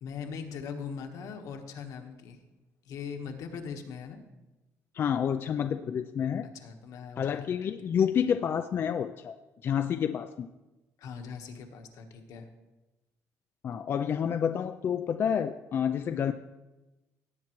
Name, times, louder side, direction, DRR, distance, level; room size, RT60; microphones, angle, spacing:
voice 1, 0.0-2.4 2.8-4.2 6.4-7.6 11.0-12.5, left 6 dB, 70° left, 4 dB, 1.3 m, -40 dB
voice 2, 4.9-6.5 7.2-9.3 9.6-10.5 13.6-16.3, left 8 dB, 40° left, 8 dB, 0.3 m, -29 dB
17.5 x 8.6 x 3.1 m, 1.1 s
cardioid pair, 160°, 6 cm